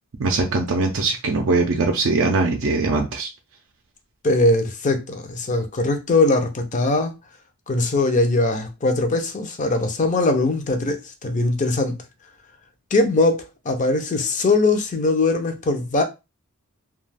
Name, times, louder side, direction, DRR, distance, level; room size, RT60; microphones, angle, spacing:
voice 1, 0.2-3.3, right 3 dB, 60° right, 0.4 m, -21 dB
voice 2, 4.2-7.1 7.7-12.0 12.9-16.0, left 2 dB, 35° left, 0.5 m, -21 dB
2.3 x 2.3 x 3.3 m
head